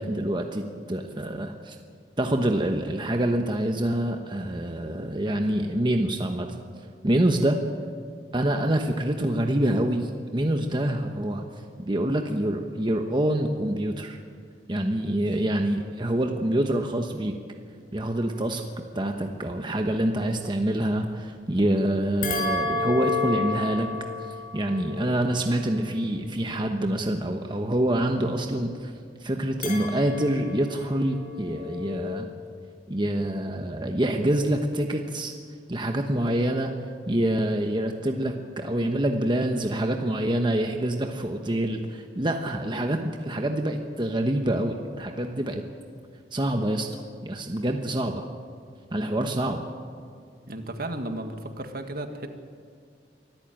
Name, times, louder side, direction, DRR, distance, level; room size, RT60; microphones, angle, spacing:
voice 1, 0.0-1.8 2.2-6.5 7.0-7.6 8.3-11.4 11.8-14.2 14.7-17.3 17.9-18.6 18.9-23.9 24.2-28.9 29.2-32.3 32.9-35.3 35.7-36.7 37.1-45.6 46.3-46.9 47.2-48.3 48.9-49.6, right 1 dB, 25° right, 4 dB, 1.2 m, -26 dB
sound 1, 22.2-26.7 29.6-32.2, left 3 dB, 55° left, 5.7 m, -32 dB
voice 2, 50.5-52.3, right 1 dB, 55° right, 6 dB, 1.8 m, -34 dB
24.5 x 13.5 x 9.1 m, 2.1 s
head